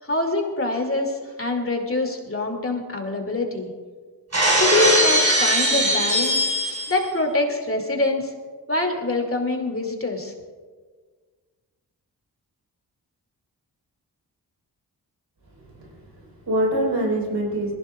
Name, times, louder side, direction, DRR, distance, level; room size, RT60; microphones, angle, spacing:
voice 1, 0.0-3.7 4.5-6.5 6.9-8.3 8.7-10.3, left 2 dB, 35° left, 2 dB, 2.6 m, -24 dB
Shatter, 4.3-7.1, right 1 dB, 40° right, 5.2 m, -20 dB
voice 2, 15.7-17.7, right 1 dB, 75° right, -1 dB, 4.6 m, -25 dB
21.0 x 15.5 x 2.4 m, 1.5 s
cardioid pair, 55°, 40 cm